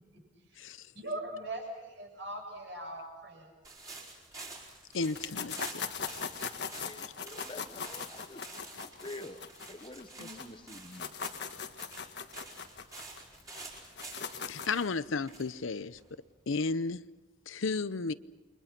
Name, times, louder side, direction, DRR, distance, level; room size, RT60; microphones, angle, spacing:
voice 1, 0.9-3.5 10.2-10.6 11.0-11.1, right 1 dB, 65° right, 7.8 m, -41 dB
sound 1, 3.6-16.4, right 2 dB, 20° right, 4.8 m, -49 dB
voice 2, 4.9-5.6 14.5-16.0 16.5-17.0 17.5-18.1, left 4 dB, 85° left, 0.7 m, -33 dB
sound 2, 5.2-10.5 10.8-14.8, left 6 dB, 55° left, 1.5 m, -40 dB
voice 3, 6.7-8.5 8.8-9.4 9.7-11.6, left 2 dB, 25° left, 0.9 m, -48 dB
29.0 x 23.5 x 6.0 m
head